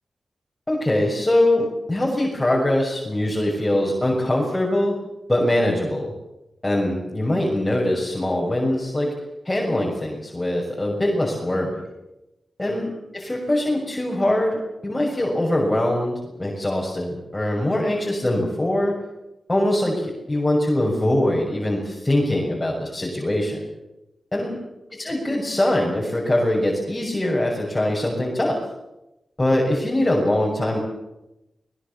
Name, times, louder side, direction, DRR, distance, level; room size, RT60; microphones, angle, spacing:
voice 1, 0.7-5.0 5.3-6.1 6.6-9.1 9.4-11.8 12.6-19.0 19.5-23.7 24.3-24.6 25.0-28.6 29.4-30.8, left 1 dB, 20° left, -3 dB, 6.6 m, -22 dB
23.0 x 21.5 x 7.2 m, 0.94 s
cardioid pair, 65°, 0 cm